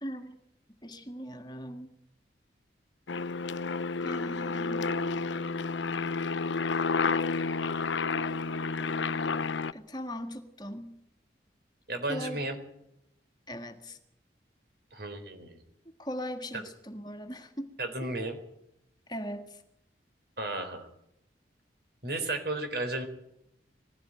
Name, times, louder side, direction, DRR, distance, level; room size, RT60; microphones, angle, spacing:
voice 1, 0.0-0.4 0.8-1.9 4.0-4.9 9.7-10.9 12.1-12.4 13.5-14.0 16.0-17.7 18.1-18.3 19.1-19.6, equal, 25° left, 5 dB, 1.8 m, -39 dB
Aircraft, 3.1-9.7, left 4 dB, 90° left, 0.7 m, -30 dB
voice 2, 11.9-12.6 14.9-15.6 17.8-18.4 20.4-20.9 22.0-23.0, right 2 dB, 60° right, 7 dB, 4.1 m, -33 dB
21.0 x 15.5 x 9.0 m, 0.79 s
head